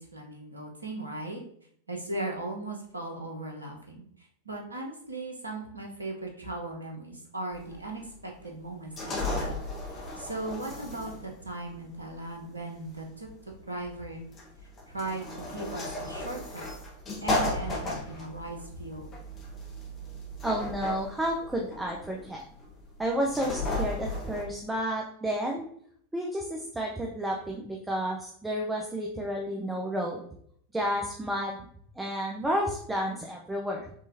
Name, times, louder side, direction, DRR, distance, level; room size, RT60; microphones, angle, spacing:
voice 1, 0.0-1.4 1.9-9.6 9.9-13.3 13.7-14.2 14.9-16.7 17.2-19.1, right 2 dB, 80° right, 1 dB, 0.9 m, -38 dB
sound 1, 7.5-24.4, left 2 dB, 30° left, 1.2 m, -36 dB
voice 2, 20.4-22.4 23.0-25.7 26.1-30.2 30.7-31.6 32.0-33.9, equal, 10° right, 0 dB, 0.5 m, -31 dB
5.4 x 3.2 x 2.6 m, 0.65 s
figure-of-eight pair, 90°, 0 cm